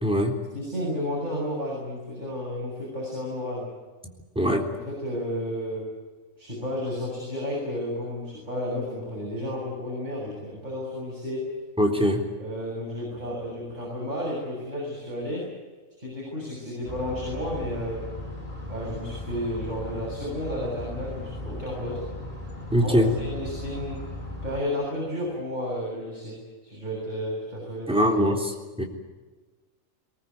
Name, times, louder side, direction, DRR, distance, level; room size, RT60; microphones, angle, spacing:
voice 1, 0.0-0.3 4.4-4.6 11.8-12.2 22.7-23.1 27.9-28.4 28.8-28.9, equal, 5° right, 1 dB, 3.6 m, -21 dB
voice 2, 0.5-3.7 4.7-5.9 6.4-11.5 12.4-15.5 16.0-18.1 18.7-22.0 22.8-24.1 24.4-26.4 26.6-28.3, left 1 dB, 35° right, -4 dB, 7.5 m, -32 dB
sound 1, 16.9-24.6, left 1 dB, 25° left, 5.3 m, -37 dB
22.5 x 19.5 x 9.4 m, 1.3 s
omnidirectional pair, 1.4 m